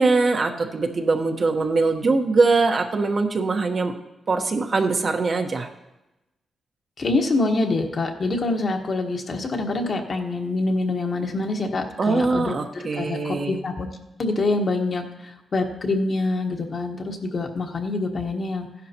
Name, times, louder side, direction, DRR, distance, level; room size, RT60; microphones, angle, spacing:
voice 1, 0.0-3.9 4.3-5.7 12.0-13.6, right 3 dB, 55° right, 4 dB, 1.2 m, -22 dB
voice 2, 7.0-13.9 14.2-15.0 15.5-18.7, left 2 dB, 55° left, 2 dB, 1.4 m, -25 dB
15.0 x 11.0 x 3.0 m, 0.97 s
cardioid pair, 60°, 0 cm